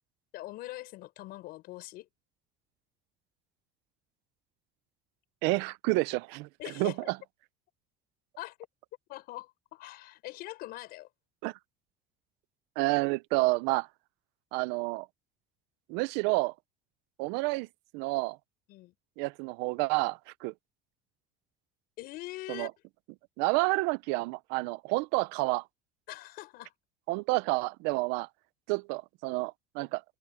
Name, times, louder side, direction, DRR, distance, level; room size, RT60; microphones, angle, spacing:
voice 1, 0.3-2.1 6.6-7.1 8.4-8.6 9.1-11.1 18.7-18.9 22.0-22.7 26.1-26.7, left 17 dB, 65° left, 5.8 m, -43 dB
voice 2, 5.4-6.5 6.8-7.2 11.4-11.5 12.8-13.9 14.5-15.1 15.9-16.5 17.2-17.7 17.9-18.4 19.2-20.5 22.5-22.7 23.4-25.6 27.1-28.3 28.7-30.0, right 24 dB, 85° right, 0.7 m, -29 dB
open air
cardioid pair, 155°, 17 cm